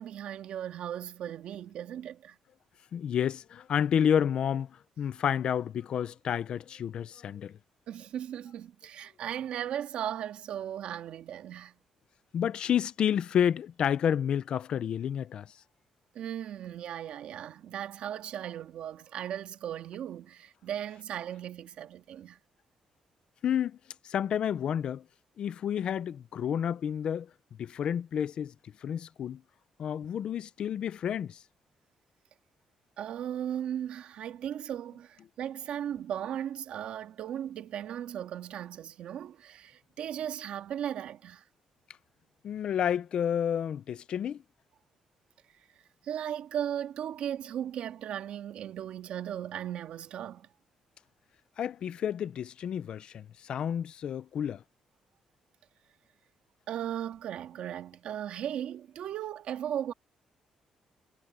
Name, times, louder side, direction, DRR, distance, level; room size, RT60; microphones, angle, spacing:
voice 1, 0.0-2.3 7.9-11.7 16.1-22.4 33.0-41.4 46.0-50.5 56.7-59.9, right 10 dB, 70° right, 1.8 m, -37 dB
voice 2, 2.9-4.7 5.0-7.6 12.3-15.5 23.4-23.8 24.0-25.0 25.4-27.3 27.6-28.5 28.8-29.4 29.8-31.4 42.4-44.4 51.6-54.6, left 9 dB, 50° left, 0.6 m, -30 dB
cardioid pair, 165°, 2 cm